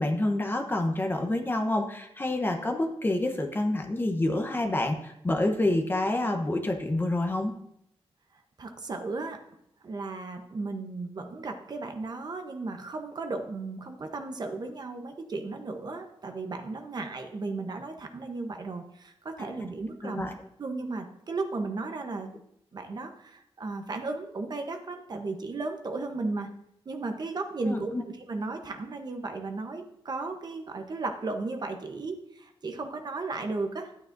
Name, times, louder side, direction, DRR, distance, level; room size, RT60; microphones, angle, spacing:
voice 1, 0.0-7.5 19.4-19.5 20.0-20.3 27.6-28.0, left 1 dB, 20° left, 4 dB, 0.9 m, -28 dB
voice 2, 8.6-9.4 9.8-20.3 20.6-22.3 22.7-26.5 26.9-33.9, right 3 dB, 45° right, 5 dB, 1.0 m, -35 dB
12.0 x 9.0 x 2.6 m, 0.76 s
wide cardioid pair, 140°, 10 cm